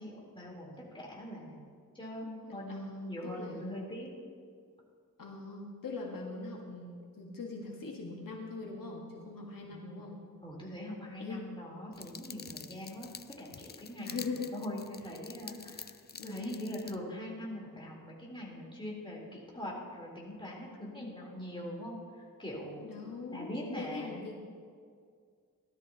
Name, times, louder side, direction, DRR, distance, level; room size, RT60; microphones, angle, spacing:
voice 1, 0.0-1.6 1.9-4.1 9.6-10.0 10.4-14.2 14.5-15.9 16.2-22.8 23.3-24.3, left 1 dB, 15° left, -4 dB, 3.6 m, -42 dB
voice 2, 2.5-3.8 5.2-10.2 11.2-11.5 14.0-14.5 16.2-16.6 21.0-21.1 22.8-24.3, left 3 dB, 80° left, -1 dB, 1.7 m, -42 dB
sound 1, 11.9-17.0, left 5 dB, 30° left, 0.4 m, -48 dB
17.5 x 12.5 x 2.9 m, 2.1 s
wide cardioid pair, 100°, 33 cm